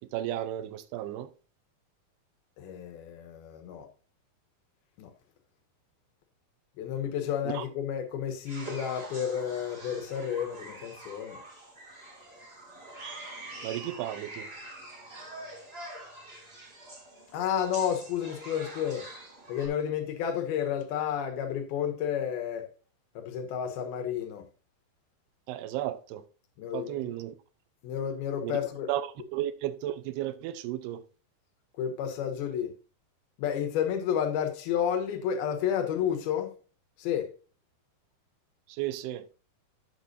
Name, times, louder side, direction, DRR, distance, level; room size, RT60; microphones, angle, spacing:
voice 1, 0.1-1.3 7.5-7.7 13.6-14.5 25.5-26.2 26.7-27.3 28.4-28.6 28.9-31.0 38.7-39.3, right 13 dB, 90° right, 2.8 m, -34 dB
voice 2, 2.6-3.9 5.0-5.1 6.8-11.4 17.3-19.1 19.5-22.7 23.2-24.5 26.6-27.0 27.8-28.9 31.8-32.7 33.4-36.5 37.0-37.3, left 9 dB, 75° left, 2.9 m, -31 dB
sound 1, 8.5-19.7, right 2 dB, 25° right, 1.3 m, -45 dB
11.5 x 7.7 x 2.6 m
omnidirectional pair, 4.5 m